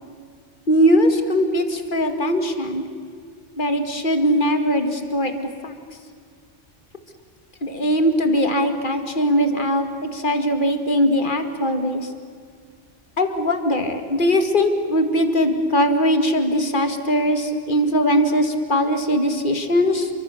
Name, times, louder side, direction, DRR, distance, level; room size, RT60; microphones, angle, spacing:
voice 1, 0.7-2.9 3.6-5.7 7.6-12.1 13.2-20.1, equal, 45° left, 7 dB, 2.3 m, -20 dB
29.5 x 24.0 x 7.2 m, 2.2 s
omnidirectional pair, 1.2 m